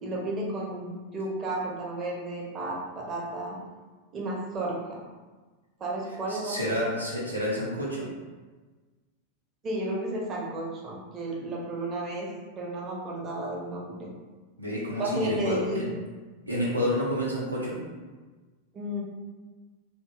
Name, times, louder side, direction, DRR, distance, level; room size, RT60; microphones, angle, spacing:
voice 1, 0.0-3.6 4.1-5.0 5.8-6.6 9.6-12.3 12.5-14.1 15.0-15.9 18.7-19.0, right 1 dB, 25° right, -3 dB, 0.7 m, -32 dB
voice 2, 6.3-8.1 14.6-15.9 16.5-17.9, equal, 85° right, -6 dB, 0.5 m, -29 dB
2.6 x 2.6 x 2.4 m, 1.3 s
figure-of-eight pair, 90°, 0 cm